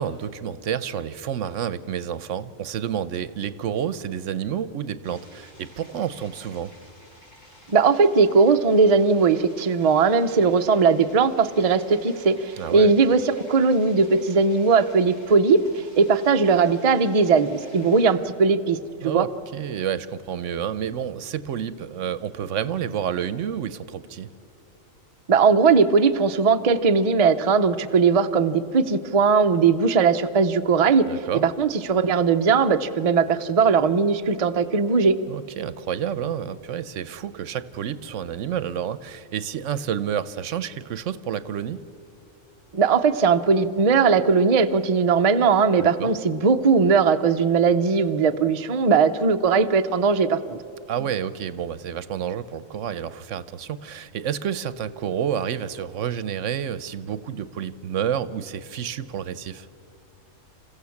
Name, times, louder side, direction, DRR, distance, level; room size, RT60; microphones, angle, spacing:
voice 1, 0.0-6.7 12.6-12.9 19.0-24.3 31.0-31.4 35.3-41.8 45.8-46.1 50.9-59.7, right 9 dB, 70° right, 15 dB, 1.0 m, -29 dB
sound 1, 5.0-18.1, equal, 70° left, 6.7 m, -52 dB
voice 2, 7.7-15.6 16.0-18.8 19.0-19.3 25.3-31.1 31.4-35.2 42.7-50.6, right 5 dB, 40° right, 8 dB, 0.6 m, -19 dB
27.5 x 15.0 x 7.1 m, 2.9 s
omnidirectional pair, 1.4 m